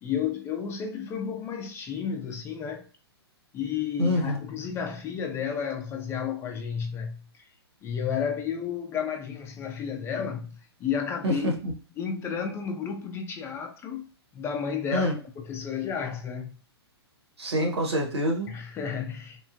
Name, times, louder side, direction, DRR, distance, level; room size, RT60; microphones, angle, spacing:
voice 1, 0.0-2.8 3.5-7.4 7.8-11.5 12.0-16.6 18.5-19.4, left 7 dB, 20° left, 0.4 m, -32 dB
voice 2, 4.0-4.4 11.2-11.7 14.9-15.1 17.4-18.5, equal, 80° right, 1.2 m, -26 dB
3.6 x 2.0 x 2.6 m
hypercardioid pair, 120°, 14 cm